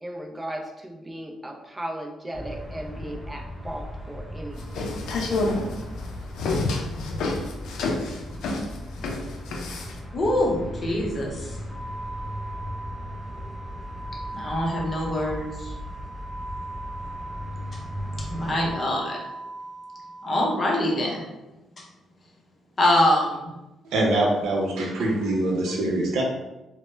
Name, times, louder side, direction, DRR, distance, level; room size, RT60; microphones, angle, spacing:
voice 1, 0.0-4.9, right 1 dB, 15° right, 2 dB, 0.4 m, -36 dB
sound 1, 2.3-18.7, equal, 10° left, 0.9 m, -37 dB
sound 2, 4.6-10.0, left 2 dB, 85° left, 0.4 m, -28 dB
voice 2, 10.1-11.5 14.3-15.7 18.3-19.2 20.2-21.2 22.8-23.4, left 1 dB, 35° left, -2 dB, 0.7 m, -24 dB
sound 3, 11.7-20.7, right 2 dB, 40° right, 0.8 m, -39 dB
voice 3, 23.9-26.2, right 1 dB, 85° right, -1 dB, 0.5 m, -24 dB
2.0 x 2.0 x 3.2 m, 1.0 s
cardioid pair, 90°, 0 cm